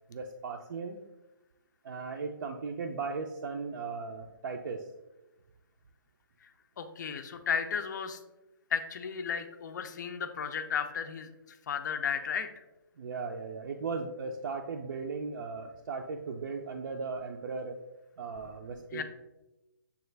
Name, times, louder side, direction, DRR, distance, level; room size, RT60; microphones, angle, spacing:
voice 1, 0.1-1.0 1.8-4.9 13.0-17.8 18.2-19.0, right 4 dB, 65° right, 2 dB, 0.4 m, -37 dB
voice 2, 6.8-8.2 8.7-12.6 18.9-19.0, left 7 dB, 55° left, 7 dB, 0.4 m, -34 dB
6.7 x 2.4 x 3.2 m, 1.0 s
hypercardioid pair, 160°, 12 cm